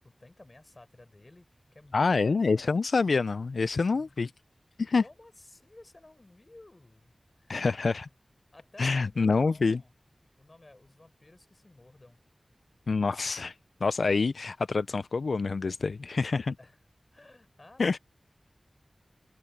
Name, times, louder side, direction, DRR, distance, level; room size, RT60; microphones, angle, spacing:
voice 1, 0.0-2.8 3.9-4.2 5.0-7.7 8.5-9.9 10.4-12.2 16.6-16.8 17.1-18.0, left 2 dB, 40° left, 6.1 m, -55 dB
voice 2, 1.9-4.3 4.8-5.0 7.5-8.1 8.8-9.8 12.9-13.5 13.8-16.6 17.8-18.0, left 4 dB, 85° left, 0.3 m, -26 dB
wide cardioid pair, 60°, 0 cm